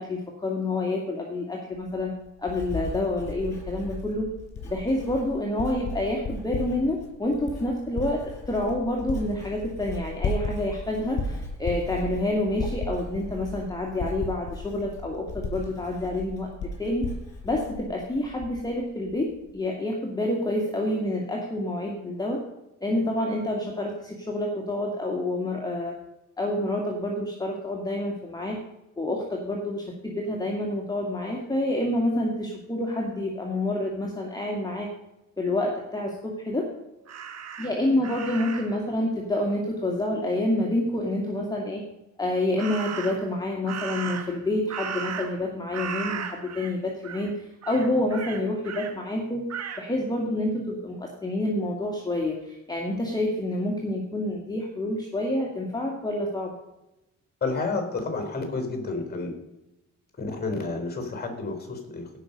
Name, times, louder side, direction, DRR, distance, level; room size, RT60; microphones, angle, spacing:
voice 1, 0.0-4.3 4.6-8.2 8.5-16.5 16.8-17.1 17.4-19.3 19.5-22.4 22.8-25.9 26.4-28.6 29.0-34.9 35.4-36.7 37.6-41.8 42.2-49.4 49.8-56.5, left 1 dB, 15° left, -1 dB, 2.1 m, -28 dB
Writing, 1.7-18.8 19.1-19.5, left 2 dB, 55° left, 5.4 m, -35 dB
Crow, 37.1-38.8 42.6-43.3 43.7-45.5 45.7-46.7 47.0-47.3 47.6-48.9 49.5-49.8, right 7 dB, 60° right, 1.7 m, -36 dB
voice 2, 57.4-59.3 60.2-62.2, left 3 dB, 30° left, 5 dB, 3.9 m, -30 dB
16.5 x 6.1 x 5.4 m, 0.93 s
cardioid pair, 90°, 30 cm